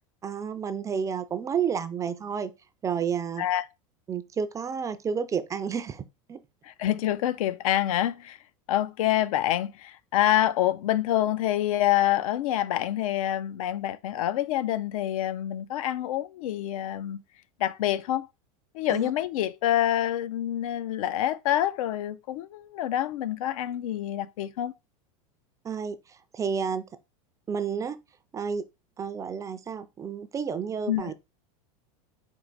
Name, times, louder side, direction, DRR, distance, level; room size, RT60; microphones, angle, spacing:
voice 1, 0.2-2.5 2.8-3.5 4.1-6.4 18.9-19.1 25.6-26.8 27.5-28.0 28.3-28.6 29.0-31.1, right 6 dB, 20° right, 0.3 m, -30 dB
voice 2, 6.6-8.4 8.7-17.2 17.6-18.3 18.7-24.7 30.9-31.1, left 12 dB, 80° left, 0.4 m, -27 dB
4.6 x 2.5 x 3.9 m
supercardioid pair, 125°, 18 cm